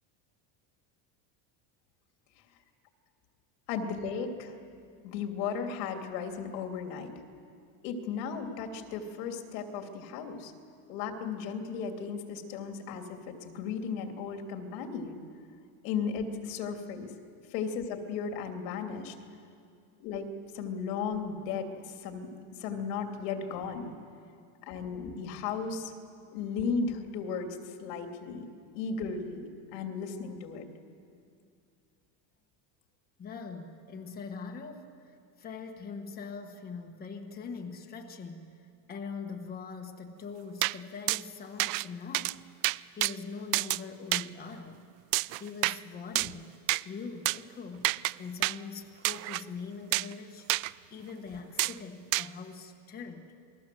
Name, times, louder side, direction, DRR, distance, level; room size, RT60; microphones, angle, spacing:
voice 1, 3.7-4.5 5.0-7.1 7.8-10.5 10.9-15.2 15.8-17.1 17.5-19.1 20.0-20.3 20.5-22.3 22.6-23.9 24.7-25.9 26.3-28.5 28.7-30.7, left 5 dB, 85° left, 4 dB, 3.0 m, -35 dB
voice 2, 33.2-42.4 43.0-44.8 45.4-46.6 46.8-47.9 48.2-53.3, left 5 dB, 20° left, 3 dB, 1.4 m, -42 dB
sound 1, 40.6-40.8 41.1-41.2 41.6-41.9 42.1-42.3 42.6-43.1 43.5-43.8 44.1-44.3 45.1-45.8 46.2-46.3 46.7-46.8 47.3-47.4 47.8-48.1 48.4-48.6 49.0-49.4 49.9-50.1 50.5-50.7 51.6-51.7 52.1-52.3, right 22 dB, 60° right, 0.5 m, -28 dB
28.0 x 21.0 x 7.7 m, 2.4 s
cardioid pair, 175°, 48 cm